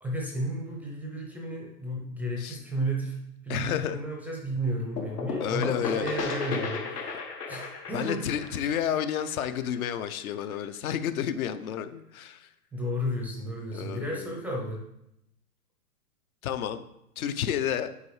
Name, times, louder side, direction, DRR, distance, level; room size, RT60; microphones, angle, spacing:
voice 1, 0.0-3.2 3.4-7.2 7.5-8.2 12.7-14.8, equal, 5° right, -1 dB, 0.4 m, -33 dB
voice 2, 3.5-4.0 5.4-6.1 7.9-12.5 13.7-14.4 16.4-16.8 17.2-17.9, left 9 dB, 65° left, 11 dB, 0.7 m, -31 dB
sound 1, 5.0-10.5, left 4 dB, 85° left, 1.3 m, -35 dB
8.3 x 4.8 x 3.2 m, 0.82 s
hypercardioid pair, 120°, 46 cm